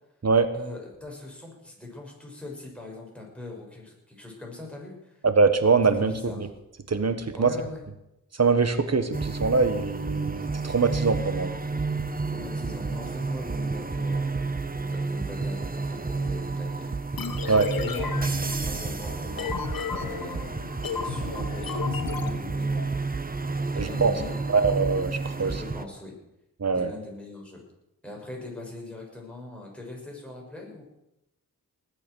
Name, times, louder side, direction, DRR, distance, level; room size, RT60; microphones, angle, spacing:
voice 1, 0.5-5.2 5.9-6.5 7.3-7.8 12.3-18.1 18.7-20.5 21.0-23.0 23.7-24.5 25.3-26.1 26.7-27.6 28.0-30.8, left 2 dB, 5° left, -2 dB, 6.6 m, -41 dB
voice 2, 5.2-6.1 6.9-7.5 8.4-11.5 17.5-17.7 23.8-24.1 24.5-25.5 26.6-26.9, right 4 dB, 50° right, 10 dB, 1.6 m, -23 dB
sound 1, 9.1-25.9, right 3 dB, 25° right, 1.0 m, -31 dB
sound 2, 17.2-22.9, left 6 dB, 80° left, 1.4 m, -34 dB
19.5 x 8.4 x 6.5 m, 0.89 s
cardioid pair, 50°, 34 cm